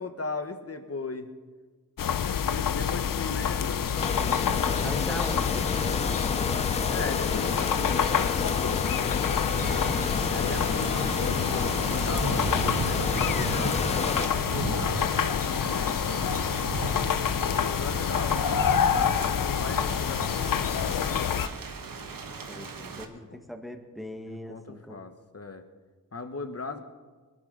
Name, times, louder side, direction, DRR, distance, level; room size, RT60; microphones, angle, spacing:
voice 1, 0.0-1.3 2.4-5.2 6.7-8.7 10.3-16.6 17.6-21.3 24.3-25.6 26.1-26.8, left 3 dB, 45° left, 8 dB, 1.4 m, -38 dB
sound 1, 2.0-21.5, left 8 dB, 70° left, 0.6 m, -27 dB
sound 2, 4.0-14.3, left 4 dB, 20° left, 0.3 m, -31 dB
voice 2, 4.8-6.2 22.5-25.1, equal, ahead, 5 dB, 1.7 m, -40 dB
Thunder / Rain, 9.5-23.0, right 4 dB, 75° right, 1.3 m, -36 dB
21.0 x 12.0 x 4.1 m, 1.4 s
cardioid pair, 55°, 34 cm